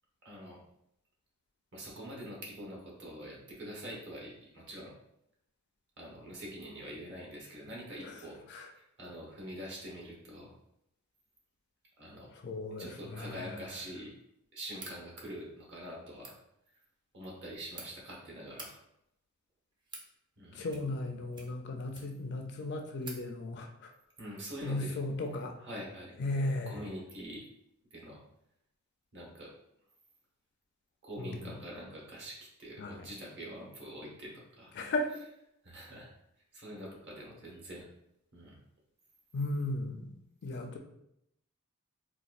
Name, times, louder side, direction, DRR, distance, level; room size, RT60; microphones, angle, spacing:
voice 1, 0.2-0.6 1.7-4.9 6.0-8.4 8.7-10.5 12.0-12.3 12.8-14.1 14.5-16.4 17.1-18.8 20.4-20.7 24.2-24.9 25.6-26.2 26.7-27.5 27.9-28.2 29.1-29.5 31.0-34.7 35.6-36.1 36.5-37.9 38.3-38.6, equal, 55° right, -3 dB, 1.0 m, -45 dB
voice 2, 12.3-13.6 20.5-23.9 24.6-25.7 26.2-26.9 31.2-31.6 32.8-33.1 34.8-35.1 39.3-40.1 40.4-40.8, left 2 dB, 50° left, 4 dB, 0.4 m, -36 dB
sound 1, 14.7-15.0 16.1-16.4 17.3-17.9 18.4-18.7 19.5-20.1 20.7-21.0 21.3-22.3 22.6-22.7 23.0-23.2, right 3 dB, 20° right, 0.4 m, -48 dB
4.1 x 2.3 x 2.4 m, 0.79 s
head